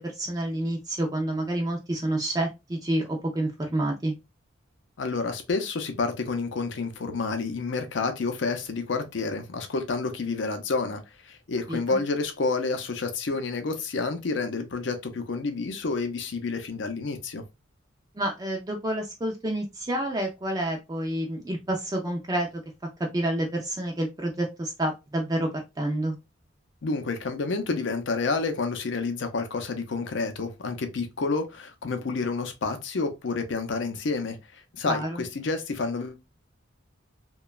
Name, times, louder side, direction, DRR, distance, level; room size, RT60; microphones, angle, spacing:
voice 1, 0.0-4.1 11.7-12.0 18.2-22.5 23.1-26.2 34.9-35.2, right 1 dB, 20° right, 0.4 m, -29 dB
voice 2, 5.0-17.4 26.8-34.4 34.7-36.2, left 4 dB, 65° left, 0.5 m, -29 dB
2.9 x 2.2 x 2.3 m
head